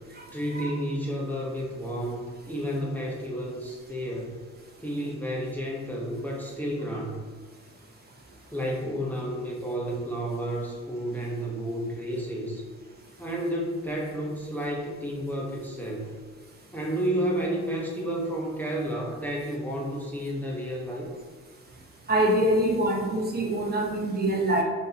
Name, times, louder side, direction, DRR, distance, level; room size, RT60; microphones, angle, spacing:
voice 1, 0.3-4.3 4.8-7.2 8.5-12.6 13.2-16.1 16.7-21.1, equal, 5° left, -3 dB, 0.6 m, -31 dB
voice 2, 22.1-24.6, right 1 dB, 30° right, -1 dB, 0.7 m, -24 dB
2.8 x 2.6 x 4.0 m, 1.5 s
cardioid pair, 90°, 30 cm